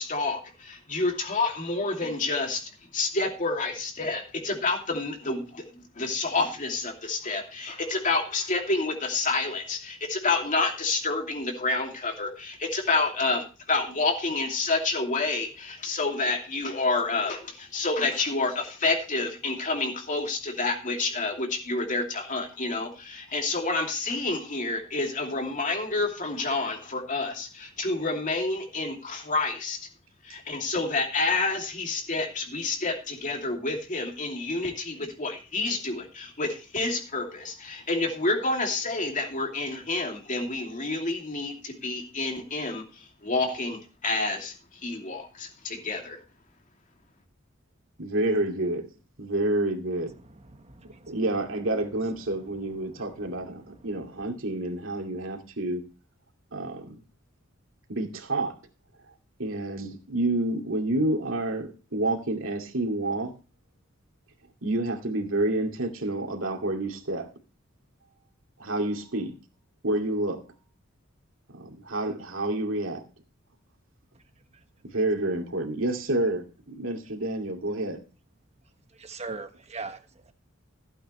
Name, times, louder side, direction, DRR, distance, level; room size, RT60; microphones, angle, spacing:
voice 1, 0.0-2.6 2.9-29.8 30.2-44.5 44.8-46.2, left 3 dB, 40° left, 2.7 m, -29 dB
voice 2, 48.0-48.9 49.2-50.1 51.1-55.8 56.5-57.0 57.9-58.5 59.4-63.3 64.6-67.3 68.6-69.3 69.8-70.4 71.5-73.0 74.8-78.0, right 2 dB, 70° right, 2.4 m, -29 dB
voice 3, 50.6-51.2 79.0-80.0 80.3-80.4, right 4 dB, 35° right, 1.3 m, -39 dB
15.5 x 8.8 x 3.2 m
head